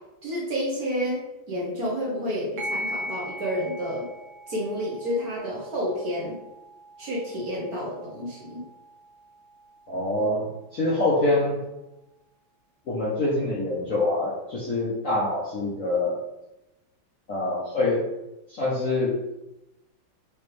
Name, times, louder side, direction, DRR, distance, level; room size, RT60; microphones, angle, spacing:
voice 1, 0.2-4.1 4.5-6.4 7.0-8.6, equal, 55° right, -4 dB, 1.3 m, -30 dB
sound 1, 2.6-11.6, equal, 85° right, 2.0 m, -40 dB
voice 2, 9.9-11.6 12.9-16.2 17.3-18.1 18.5-19.1, left 2 dB, 55° left, -6 dB, 0.9 m, -25 dB
5.1 x 3.0 x 3.2 m, 0.94 s
omnidirectional pair, 2.3 m